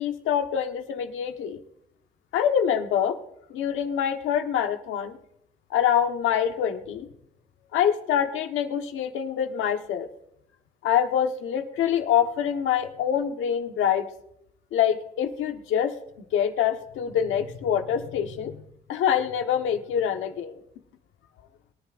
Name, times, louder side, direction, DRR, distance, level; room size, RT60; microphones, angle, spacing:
voice 1, 0.0-1.6 2.3-3.2 3.5-5.2 5.7-7.1 7.7-10.1 10.8-14.1 14.7-15.9 16.3-18.6 18.9-20.6, left 9 dB, 85° left, 6 dB, 1.3 m, -25 dB
22.5 x 10.5 x 2.5 m, 0.76 s
cardioid pair, 90°, 20 cm